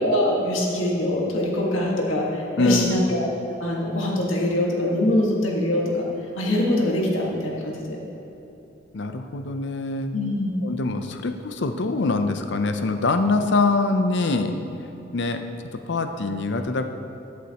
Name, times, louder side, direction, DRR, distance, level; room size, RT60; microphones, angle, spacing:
voice 1, 0.0-3.3 3.6-6.1 6.4-8.0 10.1-10.5, left 1 dB, 80° left, -2 dB, 1.8 m, -23 dB
voice 2, 2.6-3.0 8.9-10.1 10.6-14.5 14.8-15.4 15.7-16.8, left 3 dB, 60° left, 7 dB, 0.6 m, -24 dB
14.0 x 8.3 x 3.0 m, 3.0 s
head